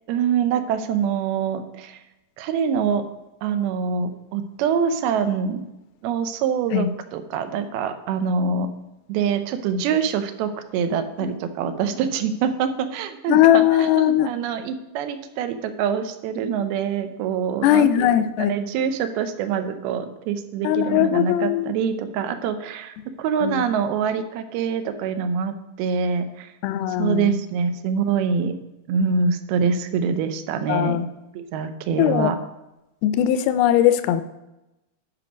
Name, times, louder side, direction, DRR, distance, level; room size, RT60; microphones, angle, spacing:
voice 1, 0.1-2.0 2.4-3.1 3.4-5.7 6.0-8.7 9.1-18.1 18.4-26.5 26.9-28.6 28.9-31.0 31.3-32.4, right 6 dB, 85° right, 9 dB, 2.6 m, -25 dB
voice 2, 13.3-14.3 17.6-18.6 20.6-21.7 23.4-23.6 26.6-27.4 30.7-31.1 32.0-32.3 33.0-34.2, left 12 dB, 85° left, 12 dB, 2.4 m, -19 dB
10.5 x 5.3 x 5.0 m, 0.96 s
omnidirectional pair, 4.4 m